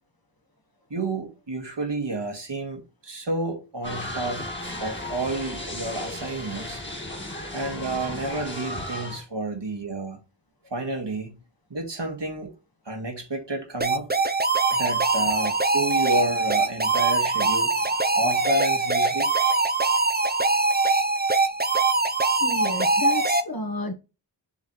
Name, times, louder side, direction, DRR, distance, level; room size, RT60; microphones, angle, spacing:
voice 1, 0.9-4.4 4.8-6.8 7.5-10.2 10.7-11.4 11.7-12.5 12.9-14.2 14.7-17.8 18.1-19.4, right 2 dB, 70° right, 1.9 m, -30 dB
sound 1, 3.8-9.2, left 1 dB, 25° left, 1.8 m, -35 dB
sound 2, 13.8-23.4, right 3 dB, 20° right, 0.6 m, -22 dB
voice 2, 22.4-23.9, left 2 dB, 55° left, 1.4 m, -31 dB
7.1 x 3.2 x 4.2 m
wide cardioid pair, 45°, 44 cm